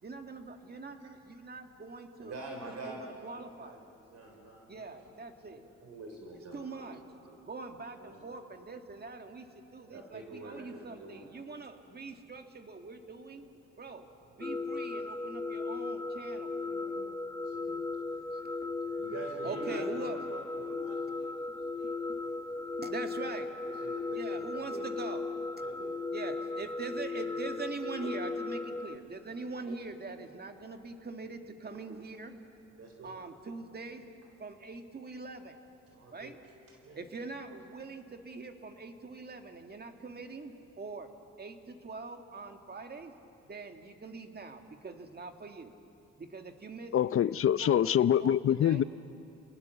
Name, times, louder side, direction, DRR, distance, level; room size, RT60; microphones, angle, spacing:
voice 1, 0.0-2.3 2.8-3.8 4.7-5.6 6.5-7.0 7.5-13.5 13.8-16.5 18.3-18.7 19.4-20.2 22.8-23.5 24.1-25.2 26.1-32.4 33.0-34.0 34.4-35.6 36.1-36.4 37.0-41.1 41.4-43.1 43.5-45.7 46.2-46.9 47.6-48.8, right 3 dB, 30° right, 6 dB, 2.0 m, -43 dB
voice 2, 2.2-7.4 7.7-8.2 9.8-11.3 13.3-13.4 14.3-14.6 16.6-18.2 18.8-22.5 22.8-23.0 23.6-24.9 25.6-26.0 26.5-26.7 32.8-33.3 35.9-36.4 36.8-37.0, right 2 dB, 55° right, 1 dB, 4.1 m, -47 dB
sound 1, 14.4-29.0, left 3 dB, 10° left, 0.8 m, -36 dB
voice 3, 46.9-48.8, left 10 dB, 45° left, 17 dB, 0.6 m, -25 dB
29.5 x 19.0 x 7.1 m, 2.8 s
cardioid pair, 90°, 30 cm